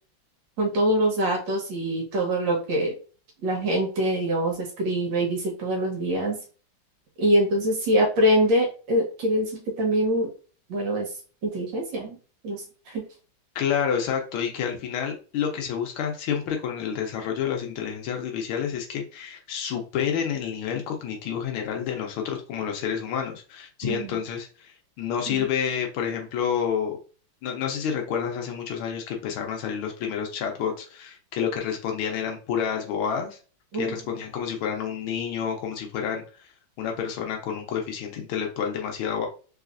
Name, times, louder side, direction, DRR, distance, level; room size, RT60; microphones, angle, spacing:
voice 1, 0.6-2.9 3.4-6.4 7.2-10.3 10.7-11.1 11.4-12.2 12.4-13.0 23.8-24.2 25.3-25.5 33.7-34.0, right 1 dB, 65° right, 0 dB, 1.8 m, -24 dB
voice 2, 13.5-27.0 27.4-33.4 33.8-36.2 36.8-39.3, left 8 dB, 85° left, 2 dB, 1.6 m, -29 dB
3.9 x 3.2 x 2.5 m, 0.37 s
omnidirectional pair, 2.3 m